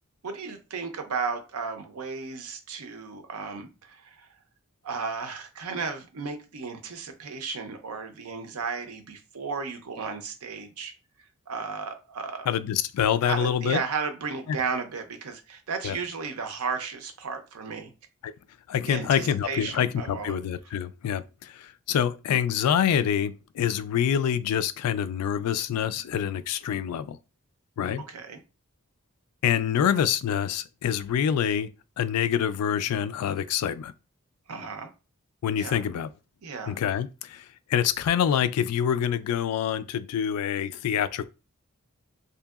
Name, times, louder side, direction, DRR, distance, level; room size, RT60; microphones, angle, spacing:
voice 1, 0.2-4.3 4.8-10.9 11.5-12.5 13.2-17.9 18.9-20.4 28.0-28.4 34.5-34.9 35.6-35.8 36.4-36.8, right 5 dB, 75° right, 0.5 m, -34 dB
voice 2, 12.5-13.8 14.5-14.6 15.8-16.0 18.2-18.3 18.7-27.2 27.8-28.0 29.4-31.7 32.0-33.9 35.4-36.1 36.7-41.3, left 9 dB, 85° left, 0.3 m, -26 dB
2.8 x 2.6 x 2.3 m
head